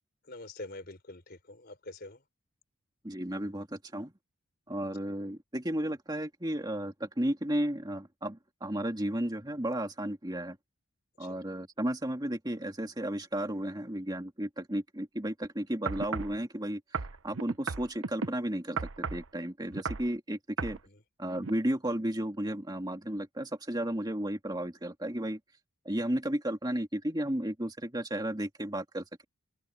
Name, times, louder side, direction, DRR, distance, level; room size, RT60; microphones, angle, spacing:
voice 1, 0.3-2.2 11.2-11.4 20.8-21.0, left 2 dB, 45° left, 4.4 m, -45 dB
voice 2, 3.0-4.1 4.7-10.6 11.2-17.0 17.2-20.8 21.2-25.4 25.8-29.2, right 1 dB, 20° right, 2.3 m, -33 dB
sound 1, 15.9-16.4 16.9-18.3 18.8-19.3 19.7-20.1 20.6-20.8 21.4-21.5, right 4 dB, 70° right, 0.9 m, -34 dB
head